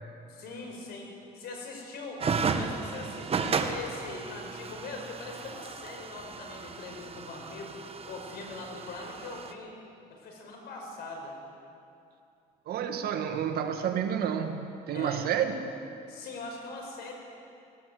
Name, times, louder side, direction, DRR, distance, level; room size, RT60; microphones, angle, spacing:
voice 1, 0.3-2.2 2.5-7.8 8.0-9.8 10.1-11.4 14.9-15.2 16.1-17.1, left 3 dB, 70° left, 1 dB, 5.2 m, -41 dB
sound 1, 2.2-9.5, right 5 dB, 35° right, 1.2 m, -34 dB
voice 2, 12.7-15.6, right 8 dB, 65° right, 6 dB, 1.9 m, -30 dB
18.5 x 18.0 x 7.8 m, 2.7 s
cardioid pair, 110°, 17 cm